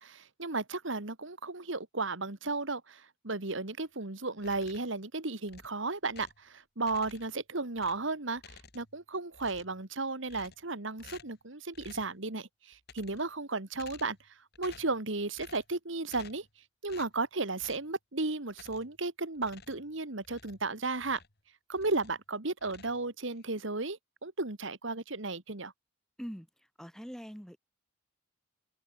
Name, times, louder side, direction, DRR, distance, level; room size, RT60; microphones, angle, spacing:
voice 1, 0.0-16.5 16.8-21.2 21.7-25.7, right 3 dB, 65° right, 2.1 m, -34 dB
sound 1, 4.4-5.0 5.5-6.5 6.8-7.4 7.7-9.0 9.3-9.8 10.3-10.7 11.0-11.4 11.7-12.2 12.7-13.4 13.7-14.3 14.5-15.0 15.3-15.7 16.1-16.5 16.9-17.2 17.6-17.9 18.5-19.0 19.3-21.4 21.7-22.2 22.6-23.4, left 5 dB, 55° left, 3.5 m, -54 dB
voice 2, 26.8-27.6, equal, ahead, 7.0 m, -42 dB
head